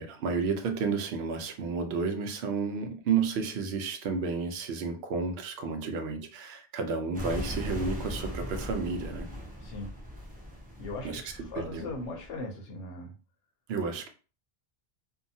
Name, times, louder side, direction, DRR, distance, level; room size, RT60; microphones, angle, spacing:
voice 1, 0.0-9.3 11.0-11.9 13.7-14.1, right 5 dB, 65° right, 6 dB, 0.8 m, -31 dB
sound 1, 7.1-12.4, equal, 10° right, 0.4 m, -39 dB
voice 2, 10.8-13.1, left 2 dB, 85° left, 1 dB, 1.0 m, -39 dB
2.7 x 2.3 x 2.6 m, 0.35 s
omnidirectional pair, 1.2 m